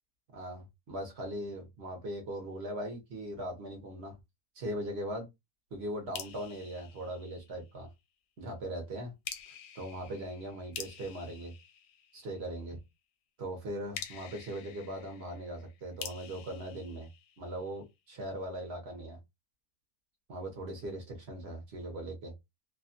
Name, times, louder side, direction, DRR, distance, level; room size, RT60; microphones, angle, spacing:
voice 1, 0.3-4.2 4.5-5.3 5.7-7.9 8.4-9.1 9.7-11.5 12.1-12.8 13.4-17.1 17.4-19.2 20.3-22.3, right 1 dB, 50° right, 0.9 m, -39 dB
sound 1, 6.1-7.9 9.2-12.6 13.9-17.8, left 8 dB, 85° left, 1.2 m, -47 dB
2.8 x 2.3 x 2.5 m
omnidirectional pair, 1.8 m